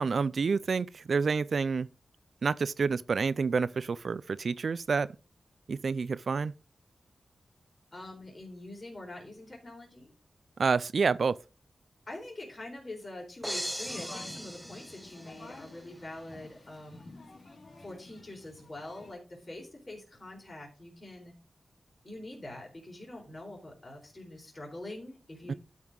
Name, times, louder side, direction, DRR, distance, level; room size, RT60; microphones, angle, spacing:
voice 1, 0.0-1.9 2.4-5.1 5.7-6.5 10.6-11.4 25.5-25.6, right 5 dB, 70° right, 0.4 m, -28 dB
voice 2, 7.9-10.1 12.1-17.0 17.8-21.3 22.0-25.6, left 1 dB, 35° left, 4.1 m, -44 dB
sound 1, 13.4-15.7, equal, 5° right, 0.4 m, -39 dB
sound 2, 13.8-19.1, left 2 dB, 65° left, 2.2 m, -50 dB
12.5 x 5.6 x 3.8 m
cardioid pair, 70°, 0 cm